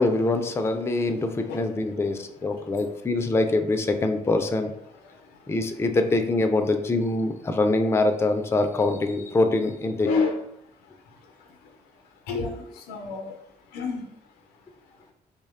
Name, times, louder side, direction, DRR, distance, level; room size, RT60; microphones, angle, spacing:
voice 1, 0.0-4.7 5.5-10.1, left 2 dB, 15° left, 6 dB, 0.3 m, -24 dB
voice 2, 10.0-10.4 12.3-13.3 13.7-14.1, left 4 dB, 80° left, 4 dB, 0.4 m, -28 dB
2.7 x 2.1 x 2.3 m, 0.72 s
hypercardioid pair, 50°, 16 cm